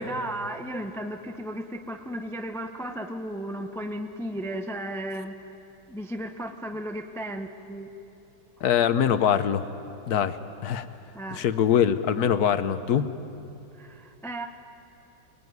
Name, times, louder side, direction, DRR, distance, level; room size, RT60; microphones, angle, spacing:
voice 1, 0.0-5.4 5.9-7.9 11.1-11.4 13.8-14.5, right 1 dB, ahead, 5 dB, 0.7 m, -34 dB
voice 2, 8.6-9.7 10.1-10.8 11.3-13.1, left 9 dB, 60° left, 12 dB, 1.3 m, -23 dB
25.0 x 21.5 x 9.5 m, 2.8 s
omnidirectional pair, 2.0 m